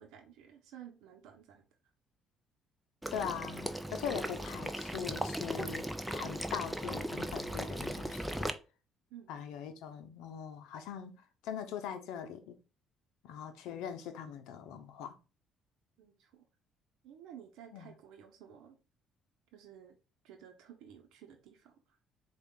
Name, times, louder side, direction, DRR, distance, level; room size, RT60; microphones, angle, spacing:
voice 1, 0.0-1.6 9.1-9.4 16.0-16.5 17.0-18.8 19.5-20.0 20.2-21.8, right 9 dB, 80° right, 0.8 m, -53 dB
Water / Liquid, 3.0-8.5, equal, 5° right, 0.5 m, -37 dB
voice 2, 3.1-8.5 9.3-11.2 11.4-12.6 13.2-15.2 17.7-17.9, left 8 dB, 80° left, 0.6 m, -41 dB
4.4 x 2.4 x 3.8 m
supercardioid pair, 80°, 0 cm